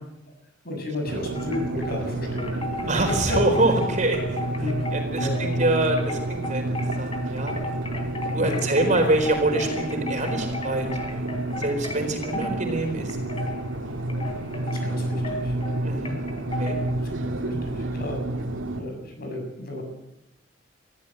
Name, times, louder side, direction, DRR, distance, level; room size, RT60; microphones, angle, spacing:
voice 1, 0.6-2.9 3.3-3.4 3.6-3.7 4.6-4.7 5.2-5.4 8.3-8.6 14.7-15.6 17.0-18.2 18.7-19.8, left 1 dB, 55° left, 3 dB, 7.4 m, -33 dB
sound 1, 1.1-18.8, right 1 dB, 85° right, 2.4 m, -30 dB
Wind chime, 1.3-2.0 2.4-16.9, left 1 dB, 30° left, 3.1 m, -36 dB
voice 2, 2.9-4.4 4.9-6.7 7.0-7.5 8.3-11.0 11.6-13.2 15.8-16.1 16.6-16.8, right 2 dB, 40° right, 5 dB, 4.3 m, -25 dB
22.5 x 14.5 x 8.0 m, 0.88 s
head